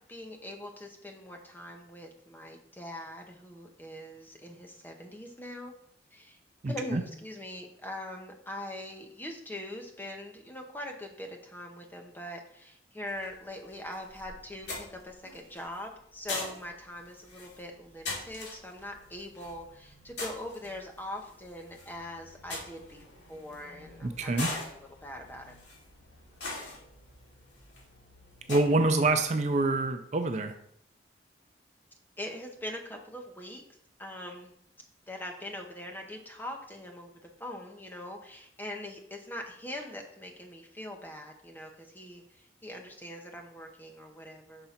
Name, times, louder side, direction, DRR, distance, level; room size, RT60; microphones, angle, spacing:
voice 1, 0.1-5.7 6.1-6.4 6.7-25.5 32.2-33.6 34.0-34.5 35.1-44.7, left 1 dB, 10° left, 2 dB, 0.8 m, -42 dB
voice 2, 6.6-7.0 24.0-24.5 28.5-30.6, right 2 dB, 40° right, 7 dB, 0.4 m, -26 dB
sound 1, 13.1-29.8, left 2 dB, 75° left, 2.2 m, -43 dB
5.7 x 3.8 x 5.7 m, 0.70 s
head